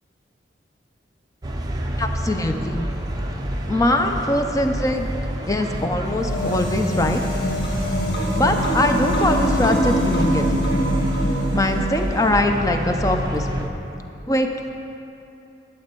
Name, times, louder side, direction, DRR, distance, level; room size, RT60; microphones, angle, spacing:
sound 1, 1.4-13.7, right 1 dB, 20° right, 0.7 m, -27 dB
voice 1, 2.0-2.8 3.7-5.1 5.5-7.2 8.3-10.7 11.5-13.7 14.3-14.7, left 1 dB, 20° left, 5 dB, 0.5 m, -22 dB
sound 2, 6.1-12.5, equal, 60° left, 1.3 m, -25 dB
12.0 x 7.7 x 4.5 m, 2.9 s
head